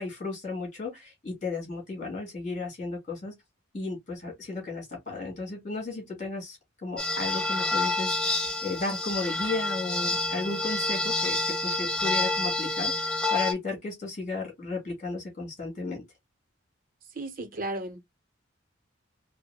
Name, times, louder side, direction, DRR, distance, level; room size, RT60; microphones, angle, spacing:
voice 1, 0.0-3.3 3.7-16.0, left 3 dB, 40° left, 2.3 m, -34 dB
sound 1, 7.0-13.5, left 2 dB, 5° left, 0.5 m, -28 dB
voice 2, 17.1-18.0, right 2 dB, 45° right, 0.7 m, -34 dB
4.6 x 2.1 x 2.2 m
head